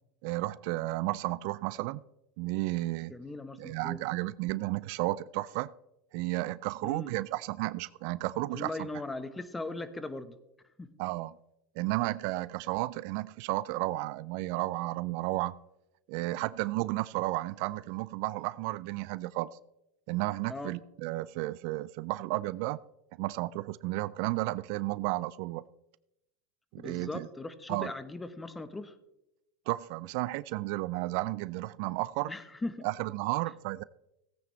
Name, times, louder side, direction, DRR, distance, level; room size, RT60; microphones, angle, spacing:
voice 1, 0.2-2.0 2.4-3.2 3.6-5.7 6.1-8.7 11.0-11.3 11.8-15.6 16.1-19.5 20.1-22.8 23.2-25.6 26.7-27.3 27.7-27.9 29.7-32.3 32.8-33.8, right 19 dB, 65° right, 19 dB, 0.3 m, -33 dB
voice 2, 3.1-4.0 6.8-7.1 8.5-10.4 10.8-10.9 20.5-20.7 26.8-29.0 32.3-32.9, left 2 dB, 15° left, 12 dB, 1.1 m, -39 dB
17.0 x 9.1 x 3.2 m, 0.87 s
hypercardioid pair, 100°, 0 cm